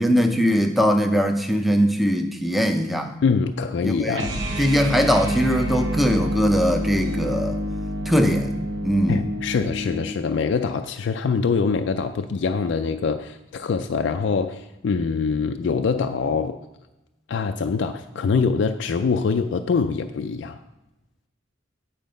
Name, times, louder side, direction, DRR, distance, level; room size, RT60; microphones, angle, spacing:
voice 1, 0.0-3.1 3.8-7.6 8.1-8.5 8.8-9.2, equal, ahead, 4 dB, 0.5 m, -21 dB
voice 2, 3.2-4.3 9.1-16.6 17.3-20.6, left 5 dB, 65° left, 6 dB, 0.3 m, -24 dB
sound 1, 4.1-10.2, equal, 70° right, 0.9 m, -28 dB
9.5 x 4.6 x 5.2 m, 0.98 s
head